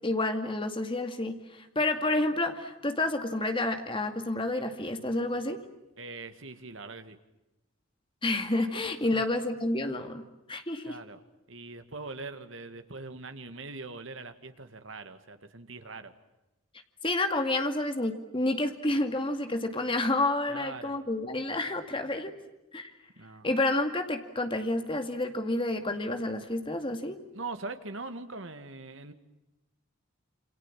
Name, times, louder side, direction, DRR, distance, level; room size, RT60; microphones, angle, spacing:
voice 1, 0.0-5.6 8.2-10.2 10.5-11.0 17.0-22.3 22.7-22.9 23.4-27.2, left 2 dB, 25° left, 6 dB, 2.3 m, -29 dB
voice 2, 6.0-7.2 9.1-9.2 10.8-11.2 11.5-16.1 20.5-20.9 23.2-23.5 27.3-29.1, right 3 dB, 65° right, 8 dB, 2.1 m, -42 dB
28.0 x 26.0 x 7.4 m, 0.95 s
head